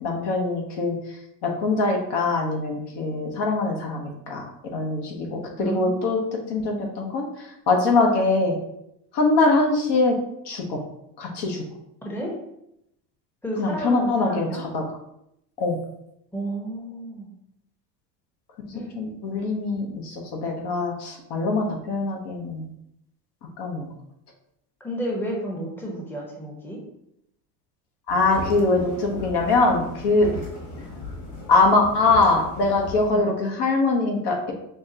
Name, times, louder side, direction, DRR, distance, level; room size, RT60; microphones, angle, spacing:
voice 1, 0.0-1.0 1.4-6.2 6.5-7.2 7.7-8.6 9.1-10.2 10.5-10.8 11.2-11.6 13.6-14.8 15.6-15.8 18.9-22.7 23.6-23.9 28.1-30.3 31.5-34.5, left 3 dB, 55° left, 1 dB, 1.0 m, -23 dB
voice 2, 5.6-6.6 12.0-12.4 13.4-14.6 16.3-17.3 18.7-18.9 24.8-26.8 33.1-33.2, right 1 dB, 5° left, -2 dB, 0.8 m, -32 dB
sound 1, 28.1-33.1, left 2 dB, 35° left, 1.4 m, -37 dB
5.6 x 2.2 x 2.7 m, 0.79 s
supercardioid pair, 90°, 50 cm